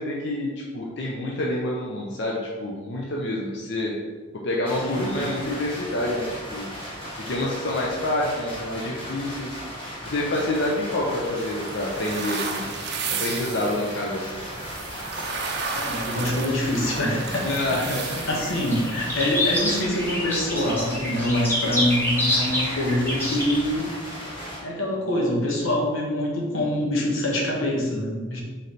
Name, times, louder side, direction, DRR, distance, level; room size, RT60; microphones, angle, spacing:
voice 1, 0.0-4.0 4.4-6.7 7.2-9.6 10.0-12.7 13.2-14.4 17.4-18.5, left 1 dB, 60° left, -3 dB, 0.6 m, -27 dB
sound 1, 4.7-24.6, equal, 25° left, 1.3 m, -37 dB
voice 2, 4.8-5.1 15.7-17.8 18.3-23.9 24.6-28.4, left 1 dB, 85° left, -2 dB, 1.1 m, -25 dB
sound 2, 10.2-19.8, right 5 dB, 55° right, 0.5 m, -34 dB
sound 3, 14.3-16.8 17.2-23.7, left 1 dB, 10° left, 1.0 m, -28 dB
3.8 x 3.2 x 4.1 m, 1.4 s
head